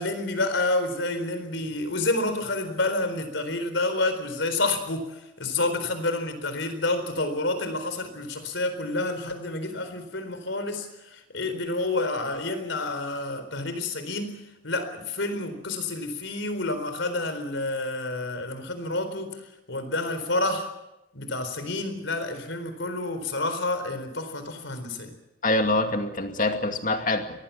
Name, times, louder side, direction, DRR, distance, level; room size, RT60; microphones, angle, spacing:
voice 1, 0.0-20.7 21.1-25.1, left 2 dB, 70° left, 9 dB, 4.2 m, -29 dB
voice 2, 25.4-27.4, left 2 dB, 45° left, 5 dB, 2.3 m, -25 dB
24.0 x 19.0 x 7.4 m, 0.91 s
head